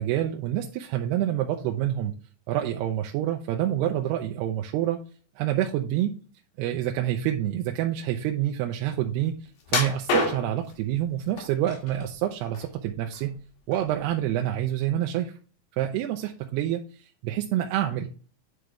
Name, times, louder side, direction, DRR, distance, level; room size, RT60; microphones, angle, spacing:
voice 1, 0.0-2.1 2.5-5.0 5.4-6.1 6.6-9.4 9.7-13.4 13.7-15.3 15.8-16.8 17.2-18.1, right 12 dB, 85° right, 3 dB, 2.6 m, -27 dB
sound 1, 9.7-10.7 11.4-12.0 12.4-13.4 13.7-13.9 14.4-14.5, left 2 dB, 85° left, 4.0 m, -27 dB
9.4 x 5.0 x 3.3 m, 0.39 s
omnidirectional pair, 4.8 m